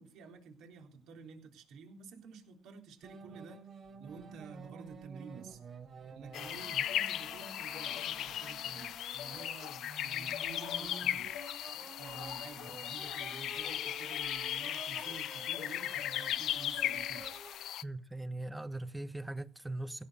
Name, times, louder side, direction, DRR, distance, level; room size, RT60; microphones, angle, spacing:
voice 1, 0.0-3.6 4.0-5.6 6.1-11.5 12.0-17.3, right 5 dB, 85° right, 3.6 m, -51 dB
sound 1, 3.0-17.6, right 5 dB, 50° right, 4.9 m, -51 dB
sound 2, 6.3-17.8, left 12 dB, 80° left, 0.6 m, -37 dB
voice 2, 17.8-20.1, right 2 dB, 10° right, 1.1 m, -40 dB
16.5 x 7.5 x 6.7 m
cardioid pair, 90°, 0 cm